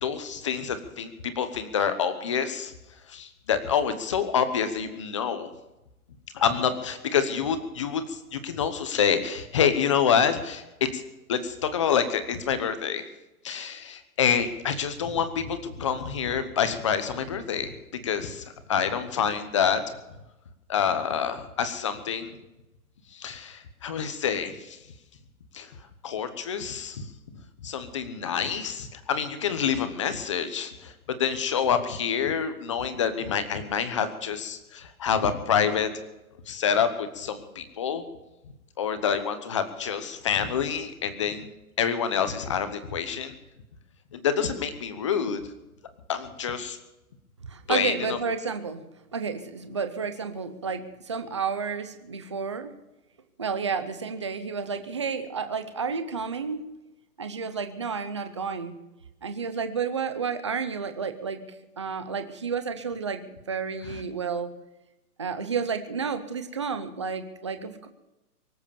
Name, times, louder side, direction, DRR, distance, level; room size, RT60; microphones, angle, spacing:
voice 1, 0.0-2.7 3.1-5.5 6.3-11.0 11.3-13.0 13.4-17.7 18.0-19.8 20.7-22.3 23.1-24.8 25.5-25.7 26.0-27.0 27.6-35.9 36.5-38.0 38.8-41.5 41.8-43.3 44.1-45.4 46.1-46.8 47.7-48.2, left 7 dB, 20° left, 10 dB, 1.0 m, -27 dB
voice 2, 47.4-48.8 49.1-52.7 53.4-56.6 57.2-58.8 59.2-61.4 61.8-64.5 65.2-67.9, right 5 dB, 20° right, 9 dB, 0.6 m, -31 dB
24.0 x 8.2 x 7.0 m, 0.98 s
hypercardioid pair, 170°, 45 cm